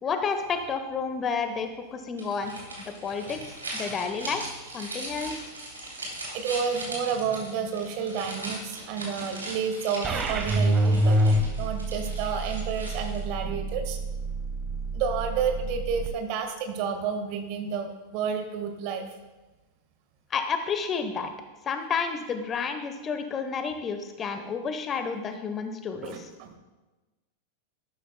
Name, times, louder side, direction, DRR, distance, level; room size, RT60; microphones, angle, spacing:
voice 1, 0.0-2.5 2.8-3.4 3.7-4.4 4.7-5.5 20.3-21.3 21.6-26.2, left 5 dB, 25° left, 8 dB, 0.9 m, -30 dB
sound 1, 2.2-13.3, right 2 dB, 75° right, 3.0 m, -39 dB
voice 2, 6.1-11.2 11.6-14.0 14.9-19.1 26.0-26.6, right 6 dB, 45° right, 6 dB, 1.5 m, -30 dB
sound 2, 10.0-16.1, right 1 dB, 25° right, 1.1 m, -27 dB
12.5 x 12.0 x 2.2 m, 1.2 s
figure-of-eight pair, 90°, 0 cm